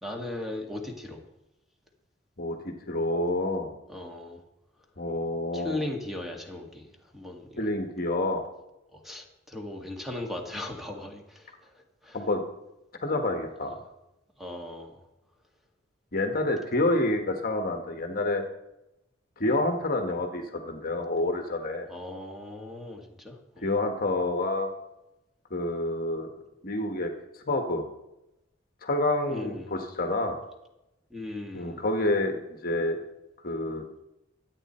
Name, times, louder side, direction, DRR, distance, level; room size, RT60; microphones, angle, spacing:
voice 1, 0.0-1.2 3.9-4.4 5.5-7.7 8.9-12.2 13.7-13.8 14.4-15.0 19.4-19.5 21.9-23.7 29.3-29.7 31.1-31.8, left 1 dB, ahead, 1 dB, 2.1 m, -38 dB
voice 2, 2.4-3.8 5.0-5.8 7.6-8.4 12.1-12.4 13.0-13.7 16.1-18.4 19.4-21.9 23.6-24.7 25.5-26.3 26.6-27.1 27.5-27.9 28.8-30.4 31.5-33.0 33.4-33.8, left 2 dB, 50° left, 5 dB, 1.5 m, -28 dB
24.0 x 8.6 x 4.4 m, 0.91 s
head